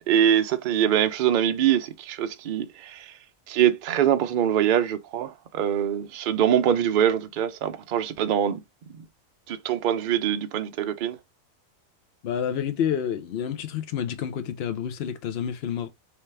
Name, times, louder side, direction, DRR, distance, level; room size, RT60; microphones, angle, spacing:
voice 1, 0.1-3.1 3.5-8.6 9.5-11.2, right 9 dB, 60° right, 0.5 m, -23 dB
voice 2, 12.2-15.9, left 8 dB, 55° left, 0.8 m, -29 dB
3.2 x 3.0 x 3.2 m
omnidirectional pair, 1.4 m